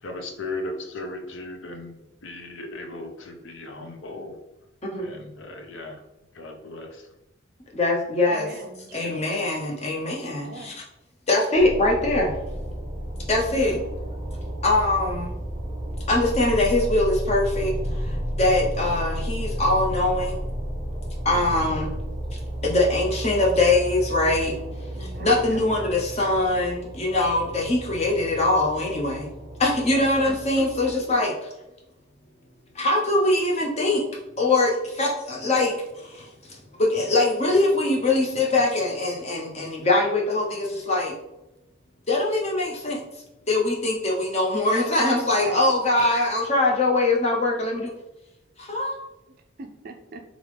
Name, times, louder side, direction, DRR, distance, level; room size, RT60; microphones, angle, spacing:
voice 1, 0.0-4.4 5.0-6.0 6.3-7.1, left 2 dB, 70° left, 4 dB, 0.6 m, -37 dB
voice 2, 4.8-5.1 7.7-8.5 8.9-10.7 11.3-12.3 13.3-13.8 14.6-15.3 16.1-20.4 21.2-21.9 22.6-24.5 25.2-29.3 29.6-31.3 32.7-34.0 34.4-41.1 42.1-43.0 43.5-47.9 48.6-48.9, left 2 dB, 30° left, -1 dB, 0.8 m, -22 dB
voice 3, 8.3-9.2 10.4-10.7 13.4-13.9 21.3-21.7 24.9-25.6 29.8-30.3 30.8-31.2 45.2-45.7 49.6-50.2, right 2 dB, 45° right, 5 dB, 0.4 m, -40 dB
sound 1, 11.6-30.9, equal, 25° right, 0.7 m, -32 dB
3.6 x 3.5 x 3.3 m, 0.95 s
head